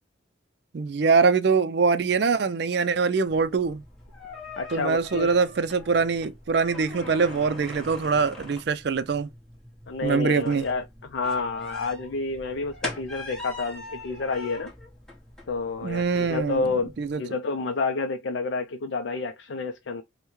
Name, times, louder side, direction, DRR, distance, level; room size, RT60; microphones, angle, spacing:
voice 1, 0.7-3.8 4.7-9.3 10.0-10.6 15.8-16.6 17.0-17.2, right 5 dB, 60° right, 0.4 m, -23 dB
sound 1, 3.3-17.1, left 2 dB, 5° left, 1.1 m, -42 dB
voice 2, 4.6-5.3 9.9-14.7 15.5-16.9 17.2-20.0, left 4 dB, 65° left, 0.4 m, -29 dB
5.5 x 2.1 x 3.0 m
head